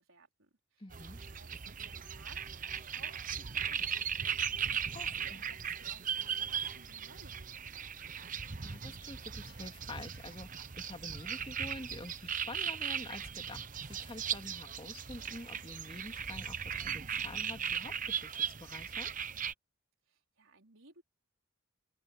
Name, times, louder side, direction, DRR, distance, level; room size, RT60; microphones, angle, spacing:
voice 1, 0.0-0.9 1.2-4.4 5.0-8.0 20.1-21.0, right 3 dB, 70° right, 4.4 m, -60 dB
voice 2, 0.8-1.2 4.9-5.4 8.6-19.1, left 2 dB, 25° left, 2.7 m, -48 dB
sound 1, 0.9-19.5, right 8 dB, 40° right, 1.0 m, -38 dB
open air
head